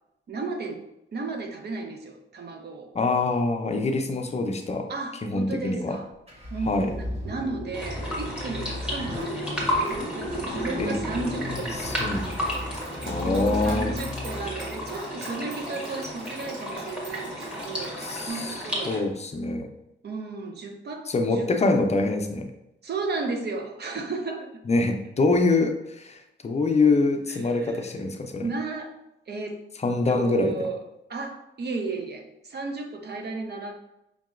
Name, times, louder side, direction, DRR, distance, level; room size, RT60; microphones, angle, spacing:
voice 1, 0.3-0.8 1.1-2.9 4.9-6.1 6.5-9.7 10.1-11.8 13.2-18.9 20.0-21.5 22.8-24.6 27.3-27.8 28.4-29.0 29.3-29.6 30.1-30.8 31.1-33.7, right 3 dB, 55° right, 4 dB, 0.6 m, -34 dB
voice 2, 2.9-4.9 5.2-6.0 6.7-6.9 10.8-10.9 11.7-12.3 13.0-13.9 18.0-18.6 18.9-19.7 21.1-22.5 24.7-28.5 29.8-30.7, left 3 dB, 35° left, 4 dB, 0.5 m, -25 dB
Car / Engine starting, 6.3-15.0, left 1 dB, 30° right, 1.2 m, -34 dB
sound 1, 7.7-19.0, equal, 5° right, 1.2 m, -33 dB
Dog, 11.5-18.2, right 2 dB, 80° right, 1.1 m, -45 dB
5.2 x 2.8 x 2.5 m, 0.87 s
wide cardioid pair, 110°, 20 cm